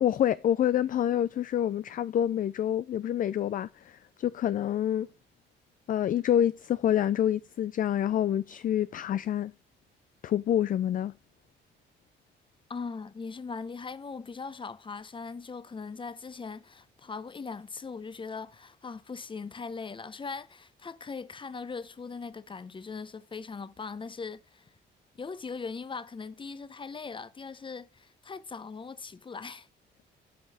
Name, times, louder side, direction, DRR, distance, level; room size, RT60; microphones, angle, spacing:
voice 1, 0.0-5.1 5.9-9.5 10.2-11.1, left 10 dB, 45° left, 0.4 m, -27 dB
voice 2, 12.7-24.6 25.2-29.7, left 4 dB, 25° left, 0.7 m, -40 dB
8.6 x 5.3 x 6.0 m
cardioid pair, 90°, 20 cm